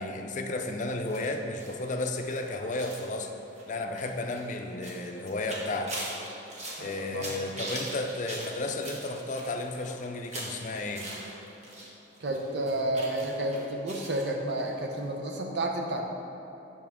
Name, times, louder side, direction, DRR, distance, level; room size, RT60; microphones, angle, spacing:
voice 1, 0.0-3.3 3.7-6.0 6.8-11.1, left 2 dB, 40° left, 4 dB, 0.5 m, -33 dB
sound 1, 1.0-11.9 12.1-14.2 14.6-14.7 15.0-15.1, right 1 dB, 40° right, 1.3 m, -42 dB
voice 2, 6.8-7.3 12.2-16.0, right 1 dB, 65° right, 2 dB, 0.8 m, -31 dB
8.2 x 6.0 x 3.6 m, 2.9 s
head